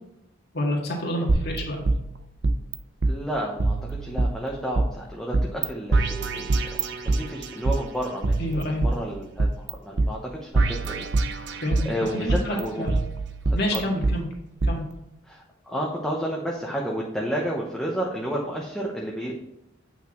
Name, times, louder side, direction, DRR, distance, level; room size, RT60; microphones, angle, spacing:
voice 1, 0.5-1.8 8.4-8.8 11.6-11.8 12.1-13.0 13.5-14.3 14.6-14.8, left 1 dB, 55° left, -1 dB, 1.9 m, -28 dB
sound 1, 1.3-2.8 3.0-3.1 3.6-4.9 5.3-5.7 5.9-7.8 8.2-9.7 10.0-10.1 10.5-11.9 12.3-14.1 14.6-14.7, right 2 dB, 60° right, 0.6 m, -24 dB
voice 2, 3.1-6.6 7.1-8.4 8.9-9.5 9.8-12.9 13.5-13.8 15.3-19.3, equal, ahead, -3 dB, 0.9 m, -31 dB
8.3 x 5.9 x 3.0 m, 0.85 s
head